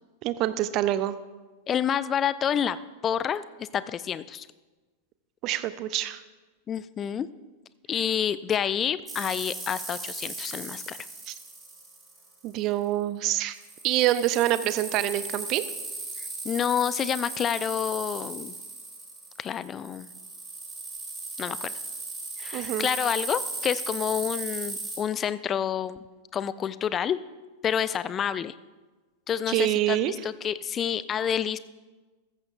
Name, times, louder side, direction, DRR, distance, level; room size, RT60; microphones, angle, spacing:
voice 1, 0.2-1.1 5.4-6.2 11.3-11.4 12.4-13.6 13.8-15.6 22.5-22.9 29.5-30.1, right 13 dB, 40° right, 14 dB, 0.6 m, -26 dB
voice 2, 1.7-2.8 3.0-4.5 6.7-7.3 7.9-11.0 16.4-18.5 19.4-20.1 21.4-21.7 22.4-26.0 26.3-27.2 27.6-28.5 29.3-30.0 30.2-31.6, left 8 dB, 25° left, 16 dB, 0.4 m, -28 dB
sound 1, 9.1-12.4 13.5-25.0, right 3 dB, 15° right, 3.2 m, -37 dB
14.5 x 14.0 x 2.5 m, 1.3 s
figure-of-eight pair, 90°, 0 cm